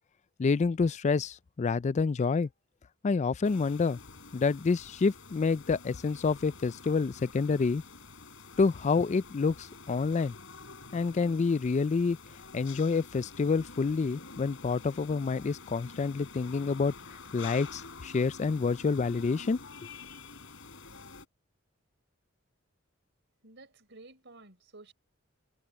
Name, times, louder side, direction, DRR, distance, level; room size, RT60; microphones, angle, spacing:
voice 1, 0.4-2.5 3.0-4.0 4.3-7.8 8.6-10.3 10.9-12.2 12.5-16.9 17.3-19.6, left 4 dB, 35° left, 0.4 m, -28 dB
sound 1, 3.4-21.3, left 4 dB, 65° left, 4.9 m, -48 dB
voice 2, 23.4-24.9, right 2 dB, 60° right, 5.3 m, -52 dB
head